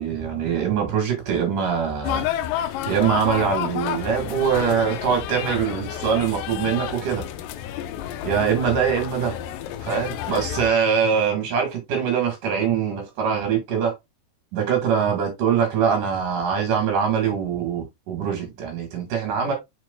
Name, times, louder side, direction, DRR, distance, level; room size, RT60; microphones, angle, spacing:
voice 1, 0.0-2.3 2.9-7.2 8.2-9.3 9.8-13.9 14.5-19.5, right 7 dB, 60° right, 2.9 m, -23 dB
sound 1, 2.0-10.7, left 11 dB, 85° left, 1.9 m, -30 dB
7.4 x 5.9 x 2.2 m
omnidirectional pair, 4.7 m